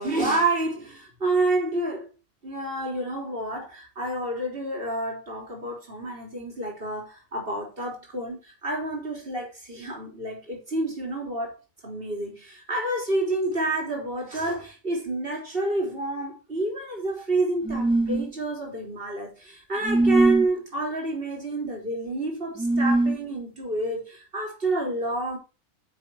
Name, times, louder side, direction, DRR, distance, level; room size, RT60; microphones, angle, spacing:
voice 1, 0.0-2.1 2.4-11.6 11.8-25.4, right 2 dB, 45° right, 3.7 m, -29 dB
sound 1, 17.7-18.3 19.8-20.5 22.6-23.2, right 2 dB, 5° right, 0.8 m, -21 dB
9.5 x 7.0 x 4.5 m
omnidirectional pair, 1.4 m